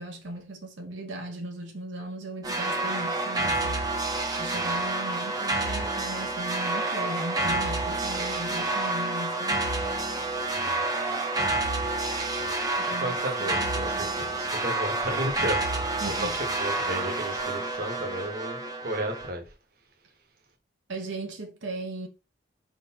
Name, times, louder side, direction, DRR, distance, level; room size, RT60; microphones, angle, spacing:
voice 1, 0.0-3.8 4.4-9.7 12.8-13.5 13.9-14.1 16.0-16.3 20.9-22.1, right 1 dB, 85° right, 1.0 m, -37 dB
sound 1, 2.4-19.3, right 2 dB, 20° right, 0.8 m, -29 dB
voice 2, 4.5-4.9 10.5-10.8 12.4-19.5, right 1 dB, 50° right, 1.1 m, -34 dB
5.0 x 3.8 x 2.8 m
head